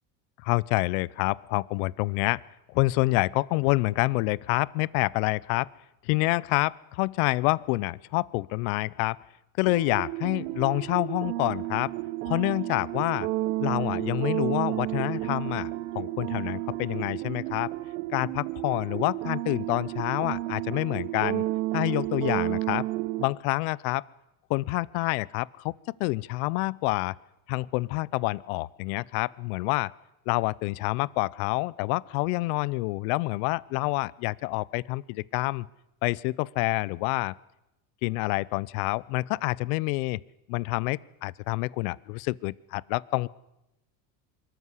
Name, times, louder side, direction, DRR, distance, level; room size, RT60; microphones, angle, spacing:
voice 1, 0.4-2.4 2.7-5.7 6.0-9.2 9.6-11.9 12.3-13.3 13.6-17.7 18.1-21.4 21.7-22.8 23.2-24.0 24.5-25.7 26.0-27.1 27.5-29.9 30.3-35.7 36.0-37.3 38.0-40.2 40.5-43.3, left 22 dB, 80° left, 23 dB, 0.7 m, -27 dB
sound 1, 9.6-23.2, right 17 dB, 85° right, 1.0 m, -31 dB
23.5 x 14.0 x 9.8 m, 0.91 s
supercardioid pair, 115°, 42 cm